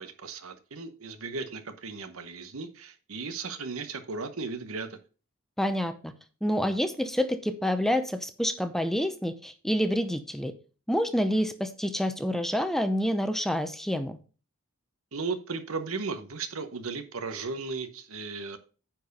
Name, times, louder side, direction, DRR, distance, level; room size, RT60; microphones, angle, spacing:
voice 1, 0.0-5.0 15.1-18.6, right 4 dB, 85° right, 9 dB, 1.0 m, -36 dB
voice 2, 5.6-6.1 6.4-10.5 10.9-14.2, equal, ahead, 9 dB, 0.7 m, -28 dB
9.9 x 4.6 x 5.3 m, 0.36 s
head